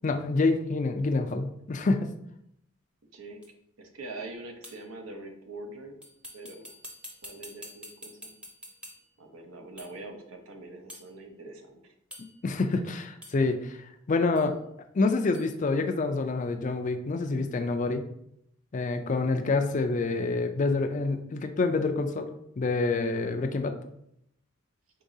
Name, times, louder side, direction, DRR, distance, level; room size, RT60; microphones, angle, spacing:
voice 1, 0.0-2.1 12.4-13.8 14.1-14.5 14.9-18.0 18.7-22.3 22.6-23.7, left 3 dB, 35° left, 6 dB, 0.4 m, -27 dB
sound 1, 3.4-3.5 4.6-4.9 6.0-9.2 9.8-10.1 10.9-11.1 12.1-12.5 13.2-13.5 14.3-14.5 15.3-15.5, equal, 5° right, 0.6 m, -47 dB
voice 2, 3.8-6.0 6.3-6.7 7.2-8.4 9.2-11.9, right 2 dB, 85° right, 3 dB, 0.8 m, -43 dB
4.7 x 3.8 x 2.7 m, 0.75 s
head